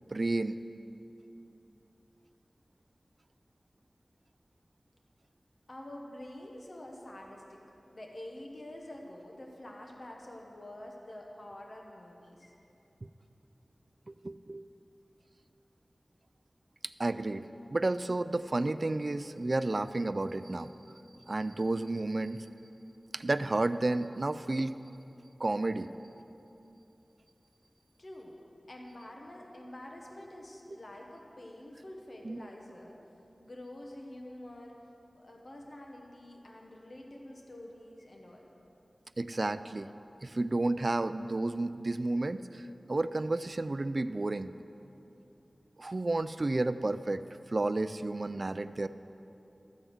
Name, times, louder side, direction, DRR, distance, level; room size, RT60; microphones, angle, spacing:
voice 1, 0.1-0.6 13.0-13.1 14.1-14.7 16.8-20.7 21.3-22.5 23.1-24.8 25.4-25.9 32.2-32.4 39.2-39.9 40.2-44.5 45.8-47.2 47.5-48.9, right 2 dB, 50° right, 13 dB, 0.3 m, -31 dB
voice 2, 5.7-7.6 7.9-12.5 28.0-28.4 28.7-33.0 33.4-34.8 35.1-38.4, left 1 dB, 60° left, 0 dB, 1.1 m, -47 dB
13.5 x 4.8 x 7.8 m, 2.9 s
wide cardioid pair, 60°, 0 cm